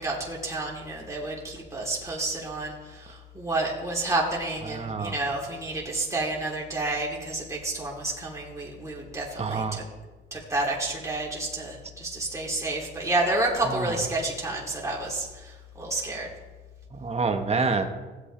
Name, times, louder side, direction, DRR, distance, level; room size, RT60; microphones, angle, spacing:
voice 1, 0.0-9.8 10.3-15.5 15.8-16.3, right 2 dB, 15° right, -4 dB, 3.3 m, -30 dB
voice 2, 4.6-5.2 9.4-9.9 13.6-14.1 16.9-17.9, right 4 dB, 30° right, 5 dB, 1.3 m, -28 dB
16.0 x 8.3 x 3.4 m, 1.3 s
cardioid pair, 90°, 20 cm